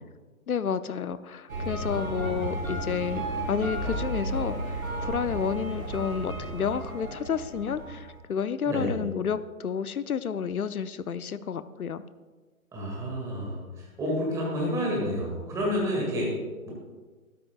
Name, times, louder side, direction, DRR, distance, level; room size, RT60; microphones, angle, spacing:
voice 1, 0.5-12.0, left 7 dB, 80° left, 14 dB, 0.7 m, -30 dB
sound 1, 1.5-8.2, right 1 dB, 75° right, 3.6 m, -33 dB
voice 2, 8.6-9.0 12.7-16.3 16.7-16.8, equal, 5° right, -3 dB, 1.8 m, -29 dB
13.0 x 12.0 x 2.4 m, 1.3 s
figure-of-eight pair, 145°, 44 cm